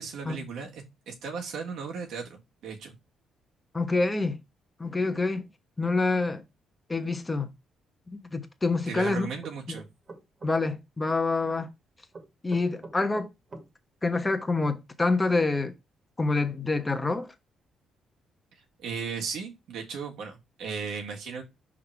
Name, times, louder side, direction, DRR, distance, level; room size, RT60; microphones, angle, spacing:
voice 1, 0.0-2.9 8.9-9.9 18.8-21.4, right 5 dB, 75° right, 1.8 m, -36 dB
voice 2, 3.7-4.4 4.8-5.5 5.8-6.4 6.9-7.5 8.3-9.3 9.7-9.8 10.4-11.7 12.4-13.3 14.0-15.7 16.2-17.3, left 3 dB, 15° left, 1.1 m, -26 dB
sound 1, 9.1-10.5 12.1-13.7, right 3 dB, 35° right, 1.8 m, -45 dB
5.8 x 3.7 x 4.6 m
cardioid pair, 110°, 0 cm